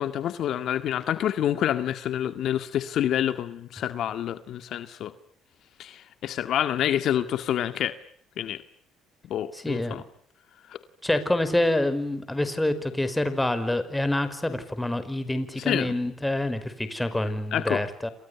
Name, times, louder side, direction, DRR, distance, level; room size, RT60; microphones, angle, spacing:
voice 1, 0.0-5.1 5.8-7.9 8.4-8.6 9.3-10.0 10.7-10.8 15.6-16.0 17.5-17.8, left 11 dB, 65° left, 10 dB, 1.9 m, -27 dB
voice 2, 9.5-10.0 11.0-18.1, left 1 dB, 10° left, 11 dB, 5.3 m, -27 dB
29.5 x 27.5 x 7.0 m, 0.62 s
cardioid pair, 100°, 0 cm